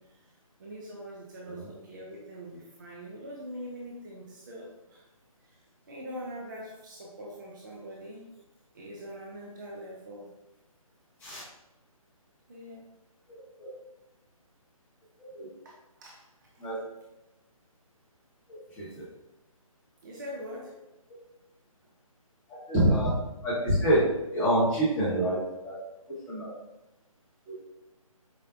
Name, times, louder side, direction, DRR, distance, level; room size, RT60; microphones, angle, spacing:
voice 1, 0.0-5.0 5.4-5.6 5.9-8.3 8.7-10.3 12.5-12.9 15.6-16.3 16.5-16.6 18.7-19.0 20.0-20.7, equal, 35° right, -3 dB, 0.5 m, -43 dB
voice 2, 13.3-13.7 15.3-15.5 16.6-16.8 18.5-19.0 22.5-23.1 23.4-24.0 24.3-25.8 26.3-26.5 27.5-27.6, right 1 dB, 5° left, -10 dB, 0.8 m, -27 dB
4.8 x 2.1 x 2.4 m, 0.95 s
figure-of-eight pair, 150°, 19 cm